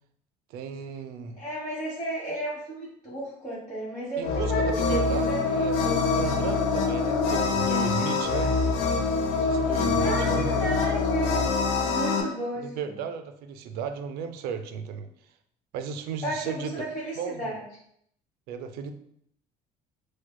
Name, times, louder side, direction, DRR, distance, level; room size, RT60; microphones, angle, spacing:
voice 1, 0.5-1.4 4.2-8.6 9.4-10.9 12.6-15.1 15.7-16.9 17.2-17.5 18.5-18.9, right 7 dB, 75° right, 8 dB, 0.4 m, -35 dB
voice 2, 1.4-5.4 9.9-11.5 11.8-12.9 16.2-17.6, right 1 dB, 30° left, -8 dB, 1.2 m, -33 dB
sound 1, 4.2-12.2, left 4 dB, 80° left, 0.5 m, -25 dB
4.6 x 2.1 x 2.2 m, 0.68 s
cardioid pair, 115°, 16 cm